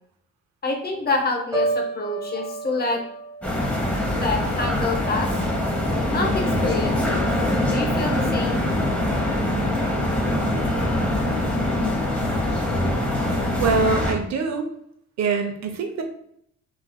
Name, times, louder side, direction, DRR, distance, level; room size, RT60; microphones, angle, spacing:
voice 1, 0.6-3.0 4.2-5.3 6.1-7.2 7.7-8.6, left 3 dB, 30° left, 2 dB, 0.7 m, -27 dB
Piano, 1.5-5.5 5.9-6.2, right 3 dB, 10° right, 1.3 m, -32 dB
sound 1, 3.4-14.1, left 1 dB, 5° left, 0.9 m, -23 dB
voice 2, 13.6-14.7 15.2-16.0, right 4 dB, 60° right, 5 dB, 0.7 m, -23 dB
3.1 x 2.7 x 2.2 m, 0.70 s
cardioid pair, 90°, 30 cm